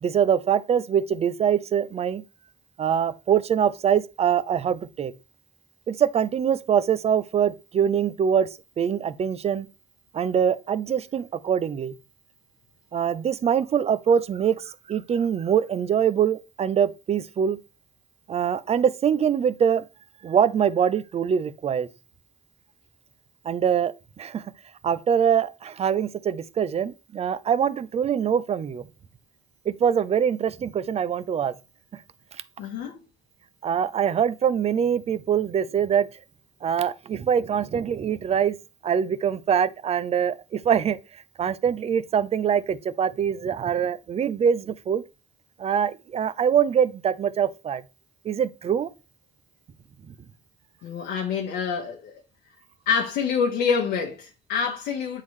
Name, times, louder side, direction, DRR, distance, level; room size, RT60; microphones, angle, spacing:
voice 1, 0.0-2.2 2.8-5.1 5.9-8.5 8.8-9.7 10.1-11.9 12.9-17.6 18.3-19.8 20.2-21.9 23.4-24.4 24.8-28.8 29.7-31.5 33.6-36.1 36.6-38.6 38.8-41.0 41.4-45.0 45.6-47.8 48.2-48.9 50.1-50.2, right 8 dB, 40° right, 0.5 m, -23 dB
voice 2, 32.6-33.0 50.8-52.2 52.9-55.2, left 6 dB, 80° left, 1.1 m, -26 dB
8.0 x 3.7 x 3.2 m
cardioid pair, 110°, 17 cm